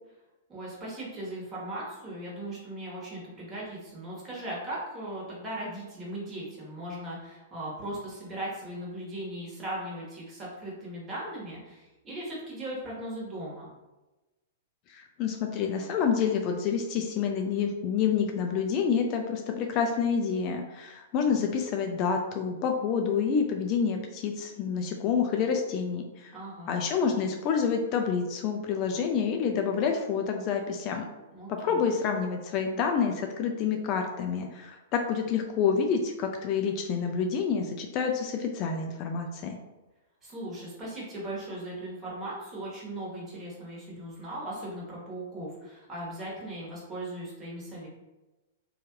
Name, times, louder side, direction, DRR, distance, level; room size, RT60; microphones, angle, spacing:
voice 1, 0.5-13.7 26.3-26.8 31.3-31.8 40.2-47.9, right 1 dB, 20° right, -5 dB, 1.3 m, -38 dB
voice 2, 14.9-26.4 26.7-31.1 31.5-39.6, left 6 dB, 40° left, 3 dB, 0.3 m, -28 dB
2.8 x 2.3 x 3.0 m, 1.1 s
hypercardioid pair, 115°, 0 cm